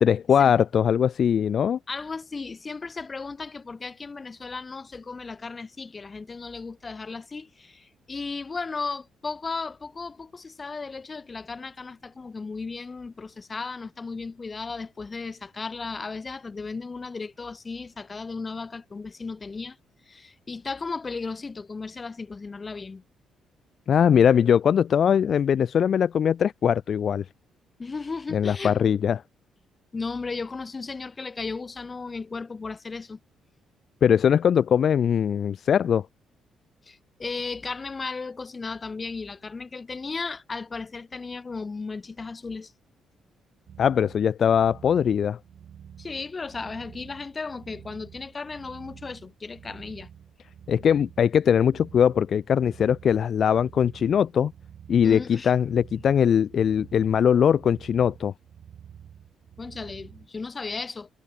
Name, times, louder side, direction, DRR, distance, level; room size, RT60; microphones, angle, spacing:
voice 1, 0.0-1.8 23.9-27.2 28.3-29.2 34.0-36.1 43.8-45.4 50.7-54.5 54.9-58.3, left 8 dB, 55° left, 0.4 m, -21 dB
voice 2, 1.9-19.8 20.1-23.0 27.8-28.9 29.9-33.2 36.9-42.7 46.0-50.1 55.0-55.5 59.6-61.1, left 4 dB, 30° left, 1.8 m, -35 dB
sound 1, 43.7-60.3, right 9 dB, 60° right, 4.9 m, -49 dB
cardioid pair, 90°, 0 cm